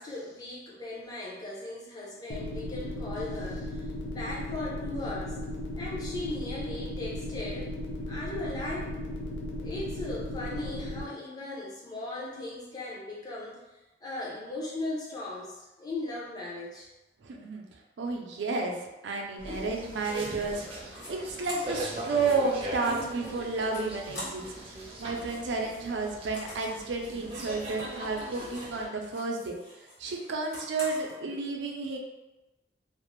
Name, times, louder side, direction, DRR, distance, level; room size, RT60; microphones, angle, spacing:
voice 1, 0.0-5.4 5.8-7.7 8.1-9.0 9.6-13.6 14.0-16.9, left 2 dB, 20° left, -5 dB, 0.5 m, -38 dB
sound 1, 2.3-11.0, left 1 dB, 85° left, 0.5 m, -36 dB
voice 2, 17.2-17.6 18.0-18.7 19.0-20.6 21.1-24.4 25.0-29.5 30.0-32.0, right 3 dB, 90° right, 1 dB, 0.4 m, -31 dB
sound 2, 19.4-28.9, right 1 dB, 30° right, 0.4 m, -40 dB
sound 3, 20.9-21.1 21.4-24.7 24.9-28.8 29.1-31.2, left 1 dB, 55° left, 1.1 m, -46 dB
2.4 x 2.0 x 2.9 m, 1.0 s
head